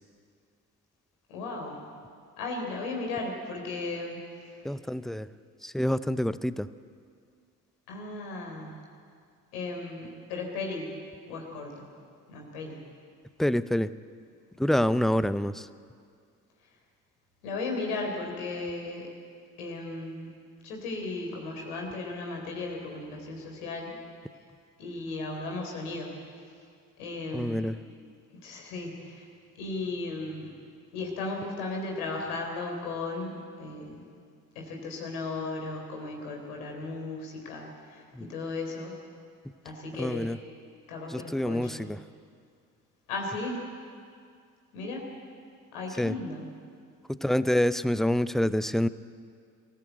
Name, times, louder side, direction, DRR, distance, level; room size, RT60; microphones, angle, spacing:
voice 1, 1.3-1.8 2.4-4.2 7.9-8.9 9.5-11.0 11.3-11.9 12.3-12.8 17.4-19.1 19.6-20.3 20.6-24.0 24.8-26.1 27.0-27.6 28.4-29.3 29.6-30.5 30.9-34.0 34.6-38.9 39.6-40.3 40.9-41.9 43.1-43.6 44.7-45.1 45.7-46.4, left 3 dB, 75° left, 1 dB, 3.8 m, -36 dB
voice 2, 4.6-5.3 5.6-6.7 13.4-13.9 14.6-15.7 27.3-27.8 38.1-38.3 40.0-40.4 41.1-42.0 46.0-46.2 47.1-48.9, left 1 dB, ahead, 16 dB, 0.6 m, -27 dB
23.5 x 15.5 x 8.1 m, 2.2 s
figure-of-eight pair, 50°, 45 cm